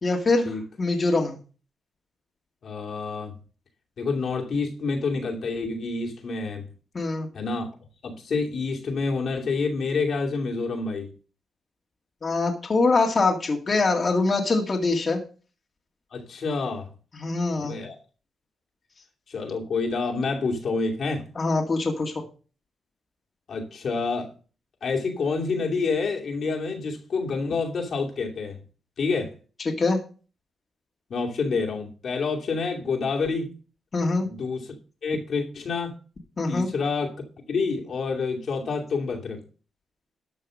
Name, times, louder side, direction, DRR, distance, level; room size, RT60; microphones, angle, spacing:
voice 1, 0.0-1.4 6.9-7.3 12.2-15.2 17.1-17.8 21.4-22.1 29.7-30.0 33.9-34.3 36.4-36.7, left 3 dB, 35° left, 2.2 m, -23 dB
voice 2, 2.6-3.3 4.0-6.7 7.3-7.7 8.0-11.1 16.1-16.9 17.5-18.0 19.3-21.3 23.5-24.3 24.8-28.6 29.0-29.3 31.1-33.5 34.2-34.7 35.0-36.0 36.5-37.2 37.5-39.4, left 4 dB, 60° left, 2.6 m, -28 dB
13.0 x 5.6 x 6.4 m
cardioid pair, 95°, 0 cm